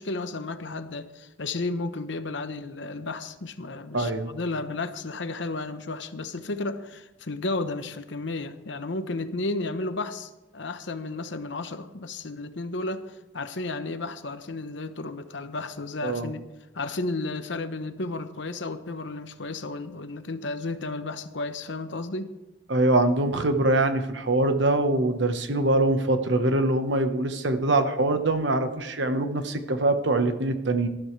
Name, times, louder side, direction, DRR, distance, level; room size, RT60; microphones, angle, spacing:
voice 1, 0.0-16.4 16.7-22.3, left 2 dB, 65° left, 10 dB, 1.0 m, -33 dB
voice 2, 3.9-4.3 16.0-16.3 22.7-30.9, right 2 dB, 65° right, 8 dB, 1.2 m, -23 dB
19.0 x 13.0 x 3.3 m, 1.0 s
head